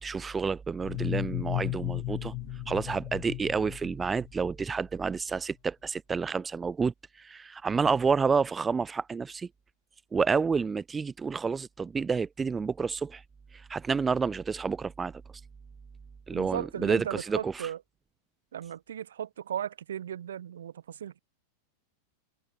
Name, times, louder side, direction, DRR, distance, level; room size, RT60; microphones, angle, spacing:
voice 1, 0.0-2.3 2.7-9.5 10.1-13.2 13.5-15.2 16.3-17.7, right 5 dB, 15° right, 1.9 m, -29 dB
sound 1, 0.8-4.5, left 26 dB, 40° left, 6.1 m, -35 dB
voice 2, 16.3-17.8 18.5-21.2, right 9 dB, 65° right, 4.5 m, -36 dB
figure-of-eight pair, 90°, 0 cm